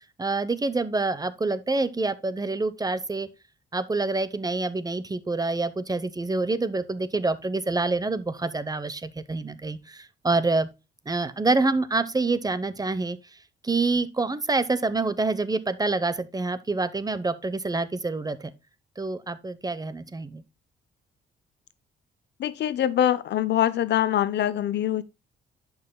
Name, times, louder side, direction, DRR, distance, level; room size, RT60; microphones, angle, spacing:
voice 1, 0.2-3.3 3.7-10.7 11.1-13.2 13.6-18.5 19.0-20.4, right 3 dB, 20° right, 0.8 m, -27 dB
voice 2, 22.4-25.0, left 11 dB, 60° left, 0.6 m, -24 dB
11.0 x 5.6 x 2.2 m
cardioid pair, 90°, 20 cm